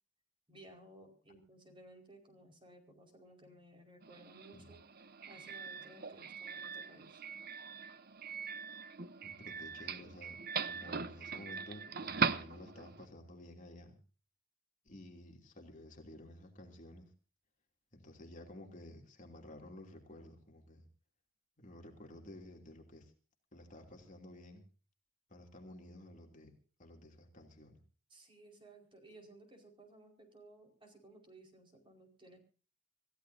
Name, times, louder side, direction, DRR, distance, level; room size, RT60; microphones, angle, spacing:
voice 1, 0.5-4.8 5.3-7.2 28.1-32.4, right 1 dB, 25° right, 3 dB, 5.0 m, -58 dB
Doorbell, 4.0-13.1, right 5 dB, 50° right, 0.9 m, -41 dB
voice 2, 9.2-10.4 10.7-14.0 14.8-17.1 17.9-20.9 21.6-23.1 23.5-24.6 25.3-26.5 26.8-27.8, left 1 dB, 40° left, 2 dB, 2.9 m, -53 dB
27.5 x 15.5 x 2.8 m, 0.37 s
head